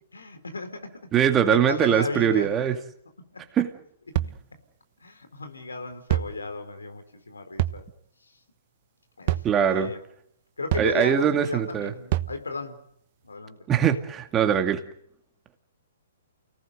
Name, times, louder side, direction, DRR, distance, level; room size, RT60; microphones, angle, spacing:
voice 1, 0.1-1.1 1.5-2.5 3.3-3.4 5.0-7.8 9.2-10.0 10.6-12.8 13.2-13.6, left 3 dB, 90° left, 8 dB, 4.2 m, -34 dB
voice 2, 1.1-2.7 3.5-3.7 9.4-9.9 10.8-11.9 13.7-14.8, right 9 dB, 20° right, 7 dB, 2.3 m, -22 dB
sound 1, 4.2-4.4 6.1-6.4 7.6-7.8 9.3-9.5 10.7-10.9 12.1-12.4, right 15 dB, 45° right, 1.2 m, -25 dB
29.5 x 18.5 x 8.0 m, 0.71 s
hypercardioid pair, 130°, 0 cm